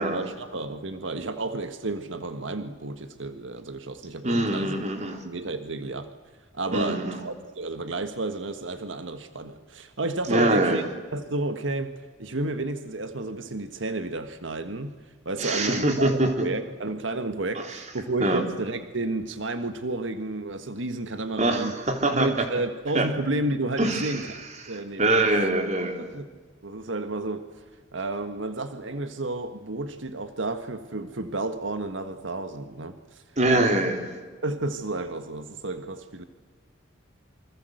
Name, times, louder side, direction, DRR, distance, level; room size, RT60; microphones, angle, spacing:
voice 1, 0.0-4.8 5.2-6.1 6.5-10.8 11.1-11.9 12.2-14.9 15.2-21.8 22.1-25.2 26.0-26.3 26.6-27.6 27.9-33.8 34.4-36.2, right 2 dB, 90° right, 9 dB, 1.6 m, -31 dB
voice 2, 4.2-5.2 6.7-7.2 10.3-10.8 15.4-16.3 17.6-17.7 18.2-18.4 21.4-22.3 22.9-23.1 23.8-24.3 24.6-26.2 33.4-34.0, right 1 dB, 40° right, 5 dB, 3.6 m, -24 dB
28.5 x 25.0 x 8.0 m, 1.4 s
head